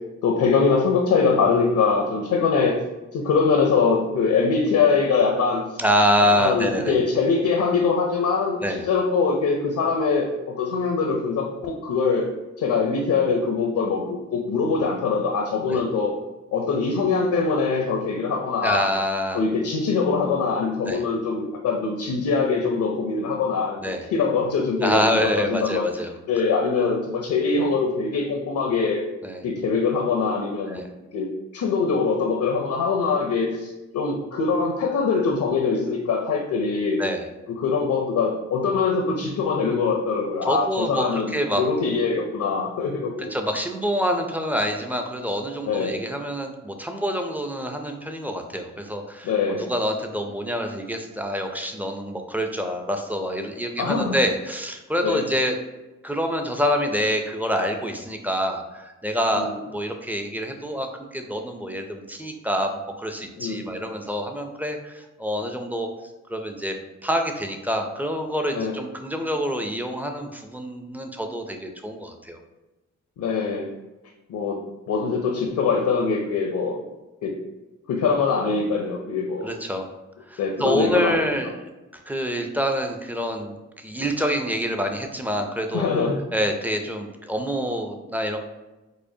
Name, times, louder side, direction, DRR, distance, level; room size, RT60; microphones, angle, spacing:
voice 1, 0.2-2.8 3.1-5.8 6.4-12.3 12.6-16.1 16.5-18.9 19.3-23.8 24.1-25.8 26.3-29.0 29.4-30.8 31.1-37.0 37.5-43.3 45.7-46.0 49.2-49.7 53.8-54.1 55.0-55.2 59.3-59.6 63.4-63.7 68.5-68.8 73.2-73.7 74.3-76.8 77.2-77.4 77.9-79.5 80.4-81.2 85.7-86.2, left 4 dB, 70° left, 2 dB, 0.5 m, -23 dB
voice 2, 5.8-7.0 8.6-8.9 15.7-15.8 18.6-19.4 20.9-21.0 23.8-24.0 24.8-26.1 29.2-29.4 30.7-30.9 37.0-37.2 40.4-41.6 43.3-49.3 49.6-55.6 56.0-60.9 61.1-65.9 66.3-66.8 67.0-72.4 79.4-79.9 80.3-85.9 86.3-88.4, equal, 5° right, 4 dB, 0.4 m, -26 dB
4.9 x 2.1 x 2.7 m, 1.1 s
cardioid pair, 75°, 32 cm